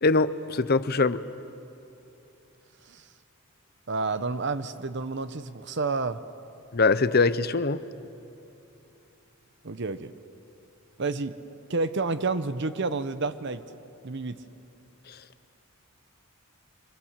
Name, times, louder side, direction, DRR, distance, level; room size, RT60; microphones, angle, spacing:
voice 1, 0.0-1.2 6.7-7.8, left 3 dB, 45° left, 14 dB, 0.7 m, -22 dB
voice 2, 3.9-6.2 9.6-10.1 11.0-11.3 11.7-13.6 14.0-14.4, right 3 dB, 55° right, 12 dB, 0.8 m, -30 dB
30.0 x 24.5 x 7.5 m, 2.8 s
head